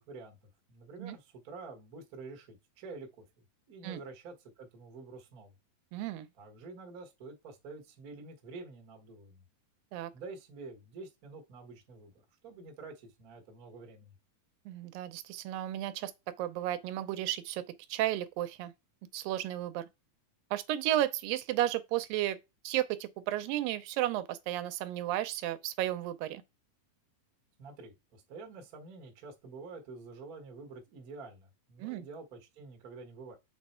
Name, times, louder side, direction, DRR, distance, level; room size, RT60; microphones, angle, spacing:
voice 1, 0.1-0.4 0.7-3.1 3.7-5.5 6.4-9.4 10.1-12.1 12.4-14.1 27.6-33.4, right 3 dB, 65° right, 0.8 m, -48 dB
voice 2, 5.9-6.3 9.9-10.1 14.7-16.1 16.4-17.6 17.9-18.7 19.1-19.9 20.5-22.4 22.6-26.4 31.8-32.1, right 13 dB, 90° right, 2.4 m, -33 dB
6.6 x 3.3 x 4.3 m
omnidirectional pair, 3.9 m